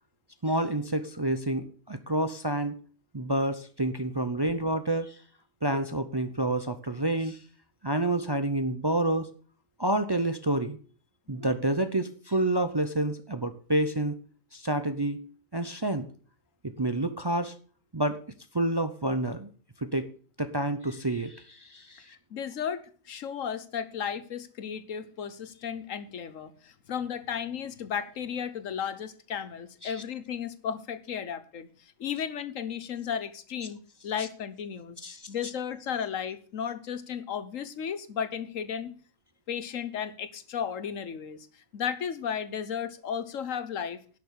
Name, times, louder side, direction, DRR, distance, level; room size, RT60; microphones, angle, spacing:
voice 1, 0.4-2.8 3.1-5.2 5.6-7.4 7.8-9.3 9.8-10.8 11.3-14.2 14.5-15.2 15.5-16.1 16.6-17.5 17.9-18.2 18.5-19.5 19.8-20.1 20.4-22.0 29.8-29.9 34.2-34.3 35.0-35.3, right 1 dB, 25° right, 9 dB, 0.6 m, -28 dB
voice 2, 22.1-31.7 32.0-35.0 35.3-38.9 39.5-41.5 41.7-44.0, left 8 dB, 80° left, 13 dB, 1.4 m, -34 dB
11.0 x 6.9 x 6.7 m, 0.43 s
omnidirectional pair, 1.3 m